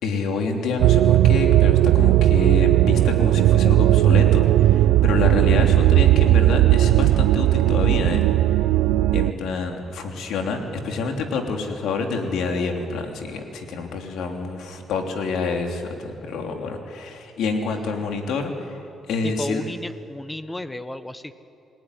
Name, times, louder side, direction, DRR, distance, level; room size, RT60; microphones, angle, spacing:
voice 1, 0.0-8.2 8.5-8.6 9.1-18.8 19.1-19.6, left 4 dB, 80° left, 3 dB, 3.2 m, -27 dB
sound 1, 0.8-9.3, right 14 dB, 90° right, 0.5 m, -17 dB
voice 2, 19.2-21.3, left 1 dB, 10° left, 11 dB, 1.3 m, -33 dB
27.5 x 19.0 x 10.0 m, 2.7 s
cardioid pair, 90°, 0 cm